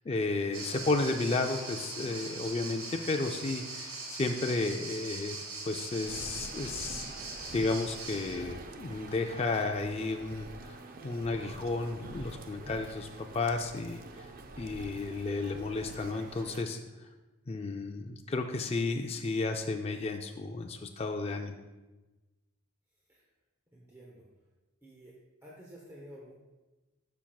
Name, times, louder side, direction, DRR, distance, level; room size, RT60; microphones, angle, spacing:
voice 1, 0.1-5.4 5.6-7.1 7.5-10.8 11.0-13.1 13.3-14.3 14.6-16.8 17.5-21.6, left 3 dB, 30° left, 4 dB, 0.3 m, -33 dB
sound 1, 0.5-8.4, right 3 dB, 75° right, 1.5 m, -41 dB
sound 2, 6.0-16.6, right 2 dB, 40° right, 0.4 m, -46 dB
voice 2, 23.7-24.3 24.8-25.2 25.4-26.3, equal, 10° right, -4 dB, 0.8 m, -51 dB
12.0 x 5.8 x 2.3 m, 1.1 s
head